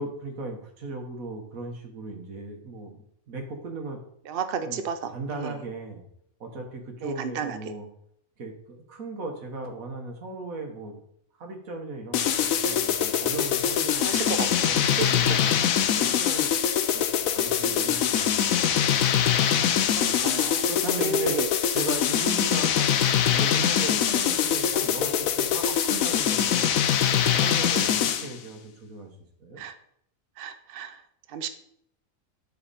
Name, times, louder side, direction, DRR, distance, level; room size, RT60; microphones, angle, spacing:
voice 1, 0.0-4.0 4.6-6.0 6.4-7.9 8.4-11.0 11.4-16.5 16.9-20.1 20.7-21.4 21.7-22.9 23.3-26.8 27.3-29.1 29.4-29.6, right 2 dB, 80° right, 4 dB, 1.7 m, -37 dB
voice 2, 4.3-5.1 5.4-5.5 7.0-7.6 14.0-15.5 15.9-16.2 19.9-20.7 21.0-21.5 29.6-29.7 30.4-31.0 31.3-31.5, right 6 dB, 55° right, 9 dB, 0.7 m, -32 dB
sound 1, 12.1-28.3, left 9 dB, 85° left, 1.1 m, -23 dB
10.5 x 4.2 x 4.1 m, 0.71 s
omnidirectional pair, 1.4 m